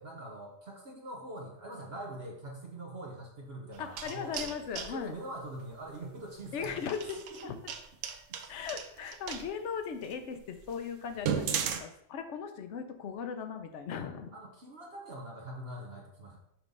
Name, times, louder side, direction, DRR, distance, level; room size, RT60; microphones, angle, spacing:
voice 1, 0.0-4.6 4.9-6.7 7.3-7.4 14.3-16.4, right 1 dB, 55° right, -1 dB, 1.2 m, -43 dB
sound 1, 3.7-4.9 6.5-9.5 10.0-10.1 10.6-10.7 11.1-11.8, right 8 dB, 85° right, 1.0 m, -35 dB
voice 2, 3.8-5.1 6.5-7.6 8.5-14.3, left 7 dB, 70° left, 6 dB, 1.0 m, -38 dB
5.9 x 3.3 x 5.3 m, 0.76 s
omnidirectional pair, 1.3 m